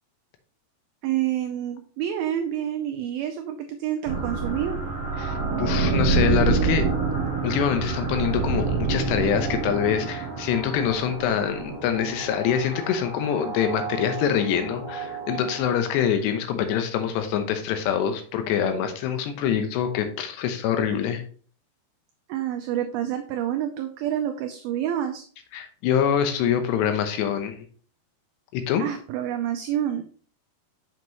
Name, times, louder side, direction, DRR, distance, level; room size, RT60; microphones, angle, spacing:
voice 1, 1.0-4.8 22.3-25.2 28.8-30.0, right 11 dB, 85° right, 5 dB, 2.1 m, -28 dB
sound 1, 4.1-16.0, right 4 dB, 40° right, 2.8 m, -27 dB
voice 2, 5.2-6.9 7.4-21.2 25.5-27.7 28.5-28.8, left 8 dB, 80° left, 7 dB, 3.1 m, -25 dB
7.6 x 5.9 x 3.0 m, 0.44 s
omnidirectional pair, 4.9 m